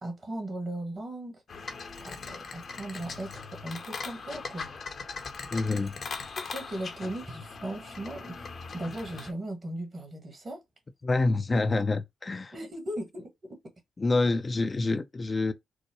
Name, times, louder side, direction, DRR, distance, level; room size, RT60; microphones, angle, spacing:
voice 1, 0.0-1.4 2.0-4.7 6.4-10.6 12.5-13.3, right 1 dB, 45° right, 1.8 m, -37 dB
sound 1, 1.5-9.3, left 4 dB, 55° left, 0.9 m, -40 dB
voice 2, 5.5-6.0 11.0-12.5 14.0-15.5, left 3 dB, 35° left, 0.5 m, -27 dB
4.7 x 2.1 x 3.0 m
hypercardioid pair, 40°, 0 cm